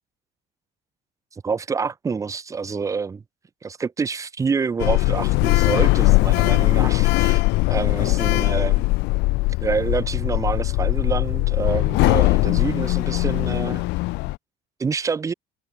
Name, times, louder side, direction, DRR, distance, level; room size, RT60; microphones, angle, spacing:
voice 1, 1.4-3.2 3.6-7.4 7.7-8.8 9.6-13.9 14.8-15.3, right 5 dB, 15° right, 1.4 m, -27 dB
Sliding door, 4.8-14.3, left 23 dB, 70° left, 0.6 m, -20 dB
cardioid pair, 165°, 18 cm